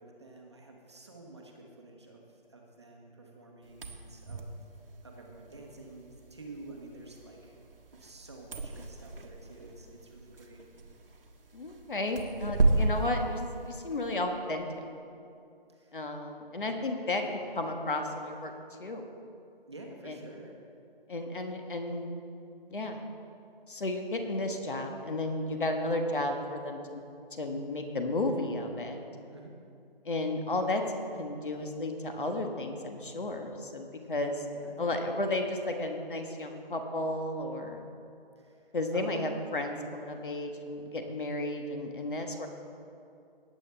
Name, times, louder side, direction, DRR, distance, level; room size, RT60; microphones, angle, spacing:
voice 1, 0.0-4.4 5.0-7.6 7.9-10.7 15.7-16.0 17.0-17.4 19.7-20.5 29.3-29.5 34.0-34.1 34.5-35.3 38.4-39.4, right 2 dB, 30° right, 0 dB, 1.1 m, -49 dB
sound 1, 3.7-14.2, right 2 dB, 70° right, 1.3 m, -34 dB
voice 2, 11.5-14.8 15.9-17.2 17.5-18.5 18.8-19.1 20.1-20.2 21.1-22.1 22.7-23.0 23.7-27.0 27.4-29.0 30.0-30.8 31.2-34.4 34.8-37.8 38.7-42.5, left 2 dB, 60° left, 4 dB, 1.5 m, -33 dB
18.0 x 8.9 x 3.4 m, 2.6 s
hypercardioid pair, 175°, 30 cm